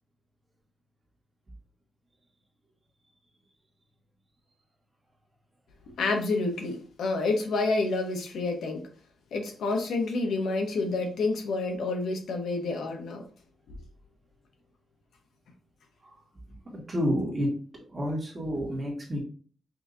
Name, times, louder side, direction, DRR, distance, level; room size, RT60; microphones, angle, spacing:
voice 1, 6.0-8.8 9.3-13.2, left 3 dB, 80° left, 3 dB, 0.9 m, -28 dB
voice 2, 16.7-17.6 17.9-19.2, equal, 25° right, -2 dB, 1.5 m, -29 dB
5.4 x 2.7 x 2.6 m, 0.41 s
wide cardioid pair, 130°, 0 cm